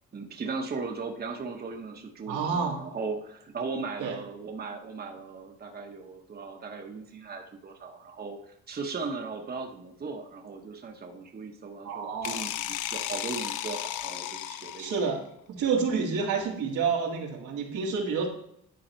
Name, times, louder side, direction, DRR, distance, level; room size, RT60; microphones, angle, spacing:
voice 1, 0.1-15.0, right 4 dB, 30° right, 3 dB, 1.0 m, -37 dB
voice 2, 2.3-2.8 4.0-4.1 11.8-12.4 14.8-18.3, right 5 dB, 85° right, -1 dB, 1.9 m, -29 dB
sound 1, 12.2-15.2, left 12 dB, 80° left, 0.5 m, -34 dB
10.5 x 4.0 x 4.4 m, 0.73 s
cardioid pair, 90°, 30 cm